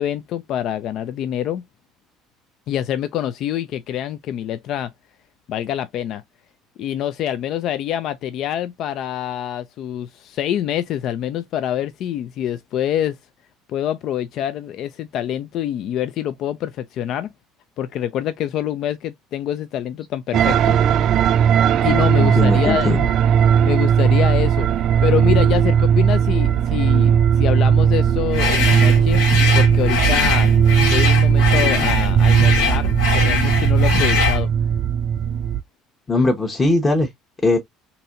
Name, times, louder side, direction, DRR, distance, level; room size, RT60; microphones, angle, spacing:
voice 1, 0.0-1.6 2.7-4.9 5.5-6.2 6.8-13.2 13.7-17.3 17.8-20.8 21.8-22.9 23.6-29.2 29.5-30.5 30.9-34.5, left 11 dB, 60° left, 0.3 m, -25 dB
sound 1, 20.3-35.6, right 8 dB, 55° right, 0.4 m, -17 dB
voice 2, 22.2-23.1 36.1-37.1 37.4-37.6, left 2 dB, 25° left, 1.0 m, -19 dB
sound 2, 28.3-34.5, left 4 dB, 80° left, 1.7 m, -21 dB
4.0 x 2.8 x 2.5 m
supercardioid pair, 80°, 0 cm